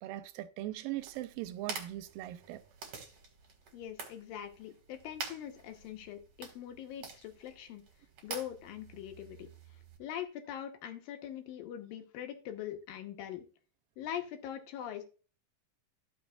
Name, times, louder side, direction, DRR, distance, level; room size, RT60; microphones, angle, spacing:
voice 1, 0.0-2.6, right 15 dB, 85° right, 2.4 m, -40 dB
sound 1, 1.0-10.0, right 5 dB, 50° right, 2.6 m, -48 dB
voice 2, 3.7-7.8 8.2-9.5 10.0-13.5 14.0-15.0, left 10 dB, 85° left, 2.8 m, -42 dB
14.5 x 5.9 x 2.3 m
omnidirectional pair, 4.0 m